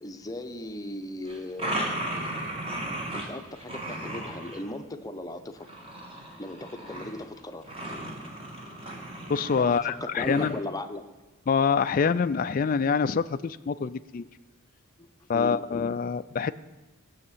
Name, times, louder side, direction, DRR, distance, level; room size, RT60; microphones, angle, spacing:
voice 1, 0.0-2.5 3.1-5.7 6.4-7.7 9.6-11.0 15.0-15.1 15.3-15.7, left 1 dB, 15° left, 6 dB, 0.8 m, -37 dB
sound 1, 1.3-3.3 3.5-4.6 5.6-7.2 7.6-9.8 10.2-10.5, right 1 dB, 25° right, 2.2 m, -35 dB
voice 2, 9.3-10.5 11.5-14.3 15.3-16.5, left 6 dB, 40° left, 11 dB, 0.3 m, -25 dB
15.5 x 6.5 x 8.6 m, 1.2 s
head